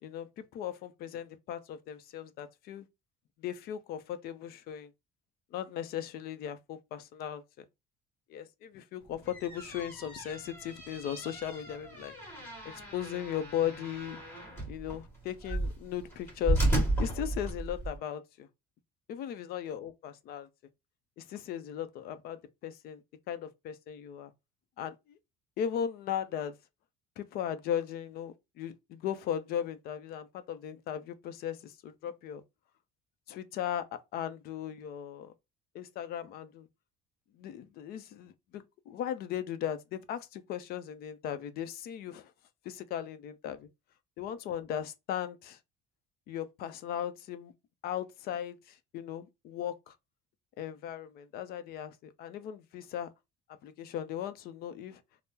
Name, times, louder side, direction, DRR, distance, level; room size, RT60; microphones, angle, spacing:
voice 1, 0.0-2.9 3.4-4.9 5.5-7.6 8.3-14.2 14.7-16.7 17.0-18.5 19.1-20.5 21.2-23.0 23.3-24.3 24.8-25.2 25.6-26.5 27.2-32.4 33.3-33.8 34.1-35.3 35.7-36.7 37.4-42.3 42.6-43.7 44.2-45.6 46.3-47.5 47.8-49.9 50.6-53.1 53.6-55.0, left 10 dB, 55° left, 0.5 m, -37 dB
sound 1, 9.1-18.0, right 2 dB, 15° left, 1.6 m, -34 dB
3.5 x 2.0 x 2.7 m
cardioid pair, 150°, 18 cm